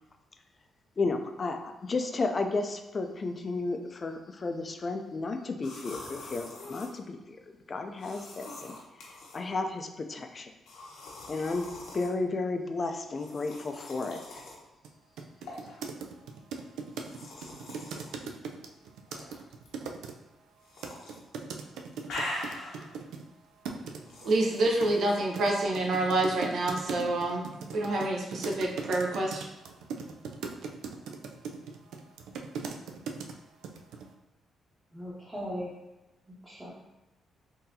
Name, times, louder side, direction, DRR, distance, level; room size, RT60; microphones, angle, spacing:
voice 1, 1.0-7.4 7.7-8.8 9.3-10.5 11.3-11.7 11.9-14.4, left 3 dB, 35° left, 5 dB, 0.4 m, -33 dB
sound 1, 5.6-6.9 8.0-9.4 10.7-12.1 13.1-14.6 15.5-15.7 16.9-18.1 19.1-19.7 20.6-21.2 21.5-22.9 24.0-25.1, left 2 dB, 85° left, 0.9 m, -42 dB
sound 2, 14.8-14.9 15.2-20.1 20.8-23.2 23.6-24.0 24.7-33.3 33.6-34.1, right 5 dB, 90° right, 0.3 m, -39 dB
voice 2, 24.2-29.4, right 2 dB, 70° right, 0 dB, 0.7 m, -28 dB
voice 3, 34.9-35.7 36.3-36.7, equal, 10° right, -8 dB, 0.9 m, -38 dB
3.8 x 2.7 x 2.7 m, 1.0 s
cardioid pair, 95°, 0 cm